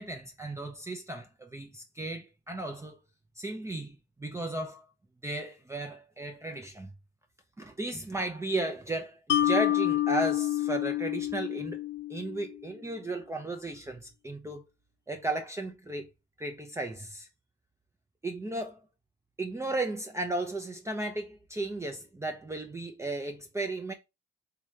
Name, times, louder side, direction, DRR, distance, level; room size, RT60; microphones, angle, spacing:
voice 1, 0.0-3.0 3.4-4.9 5.2-6.9 7.6-11.8 12.1-14.7 15.1-16.1 16.4-17.3 18.2-18.8 19.4-23.9, right 2 dB, 15° right, 0.6 m, -35 dB
Mallet percussion, 9.3-12.6, left 13 dB, 65° left, 0.4 m, -28 dB
3.6 x 2.8 x 3.2 m
cardioid pair, 90°, 20 cm